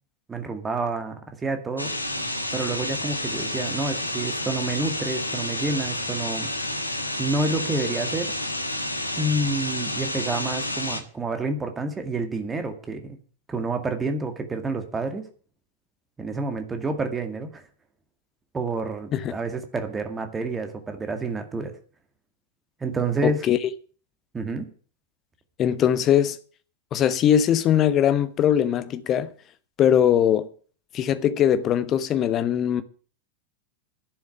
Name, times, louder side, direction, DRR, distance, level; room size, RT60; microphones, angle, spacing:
voice 1, 0.3-1.1 1.4-1.9 2.5-6.5 7.2-8.3 9.2-13.2 13.5-15.2 16.2-17.6 18.5-21.7 22.8-23.4 24.3-24.7, right 3 dB, 15° right, 2.1 m, -28 dB
sound 1, 1.8-11.0, left 1 dB, 85° left, 1.5 m, -30 dB
voice 2, 23.2-23.6 25.6-26.4 26.9-29.3 29.8-30.5 30.9-32.8, left 9 dB, 30° left, 1.1 m, -21 dB
11.5 x 7.1 x 9.7 m
figure-of-eight pair, 90°, 0 cm